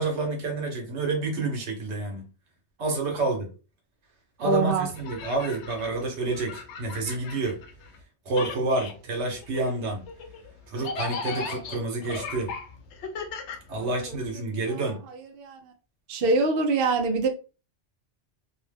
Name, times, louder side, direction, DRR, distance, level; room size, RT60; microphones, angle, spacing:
voice 1, 0.0-2.3 2.8-3.5 4.4-7.6 8.2-10.0 10.7-12.5 13.7-15.0, right 3 dB, 85° right, 1.2 m, -29 dB
voice 2, 4.4-4.9 13.8-14.2 14.7-15.7 16.1-17.3, right 3 dB, 65° right, 0.7 m, -26 dB
sound 1, 4.9-8.0 8.3-14.3, left 4 dB, 80° left, 0.9 m, -38 dB
2.6 x 2.1 x 3.3 m
omnidirectional pair, 1.2 m